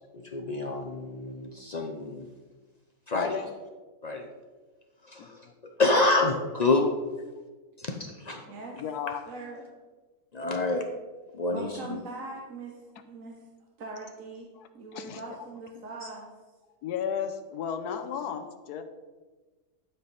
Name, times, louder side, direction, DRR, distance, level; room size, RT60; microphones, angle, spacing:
voice 1, 0.0-2.3 3.1-3.4 4.0-4.3 5.1-5.5 5.8-6.9 7.8-8.4 10.3-10.9 11.3-12.0 15.1-15.2 16.0-16.1, left 2 dB, 55° left, 2 dB, 0.4 m, -28 dB
voice 2, 3.1-3.5 5.2-5.3 8.7-9.2 14.6-15.2 16.8-18.8, left 8 dB, 80° left, 8 dB, 1.3 m, -34 dB
voice 3, 9.3-9.6 11.5-13.4 13.8-14.5 14.7-16.3, right 3 dB, 60° right, -1 dB, 1.3 m, -41 dB
11.5 x 5.0 x 4.1 m, 1.3 s
omnidirectional pair, 1.6 m